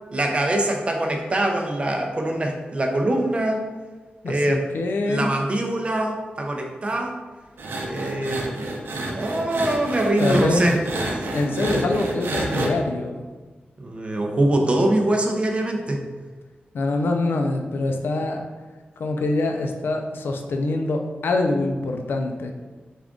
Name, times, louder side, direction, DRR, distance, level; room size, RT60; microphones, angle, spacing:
voice 1, 0.1-3.6 4.3-4.7 5.1-7.1 7.8-8.5 9.1-10.8 13.8-16.0, right 1 dB, 35° right, 2 dB, 0.5 m, -23 dB
voice 2, 4.2-5.3 10.2-10.7 11.3-13.3 16.7-18.5 19.0-22.5, left 2 dB, 85° left, 4 dB, 0.4 m, -24 dB
sound 1, 7.6-12.7, right 2 dB, 85° right, 0.5 m, -29 dB
3.5 x 2.4 x 3.6 m, 1.3 s
wide cardioid pair, 110°, 4 cm